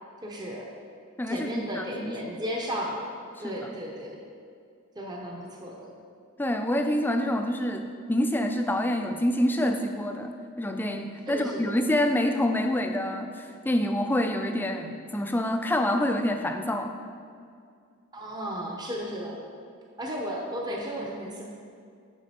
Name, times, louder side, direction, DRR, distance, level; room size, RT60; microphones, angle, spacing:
voice 1, 0.2-0.7 1.3-3.0 3.4-4.2 5.0-5.9 11.3-11.8 18.1-19.4 20.0-21.4, equal, 20° right, -2 dB, 0.7 m, -34 dB
voice 2, 1.2-2.2 3.4-3.7 6.4-16.9, left 1 dB, 10° left, 6 dB, 0.3 m, -27 dB
7.3 x 5.9 x 4.2 m, 2.3 s
head